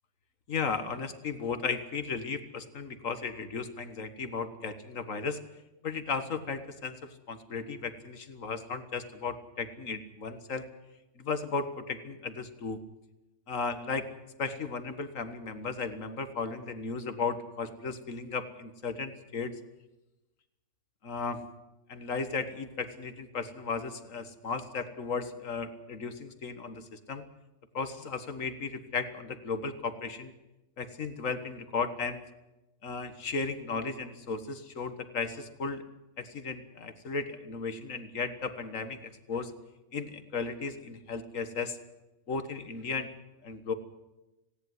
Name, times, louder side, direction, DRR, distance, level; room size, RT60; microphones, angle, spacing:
voice 1, 0.5-5.4 5.8-10.6 11.2-12.8 13.5-14.1 14.4-19.6 21.0-21.4 21.9-27.2 27.7-30.3 30.8-32.2 32.8-35.8 36.2-39.5 39.9-41.8 42.3-43.1 43.4-43.7, left 4 dB, 85° left, 10 dB, 2.0 m, -35 dB
19.0 x 17.5 x 9.5 m, 0.99 s
omnidirectional pair, 1.3 m